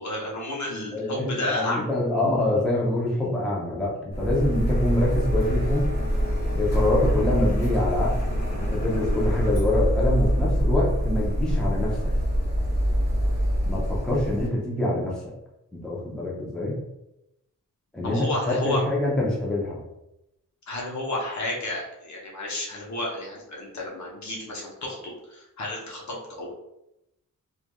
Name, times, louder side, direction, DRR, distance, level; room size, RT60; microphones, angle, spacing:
voice 1, 0.0-1.9 18.0-18.8 20.7-26.5, left 1 dB, 55° left, -3 dB, 0.8 m, -31 dB
voice 2, 0.9-5.9 6.5-8.2 8.5-12.1 13.7-15.2 15.7-16.8 17.9-19.8, left 1 dB, ahead, -5 dB, 0.6 m, -25 dB
Printer, 4.1-14.5, equal, 40° left, 1.5 m, -24 dB
3.1 x 2.4 x 2.2 m, 0.87 s
wide cardioid pair, 105°, 34 cm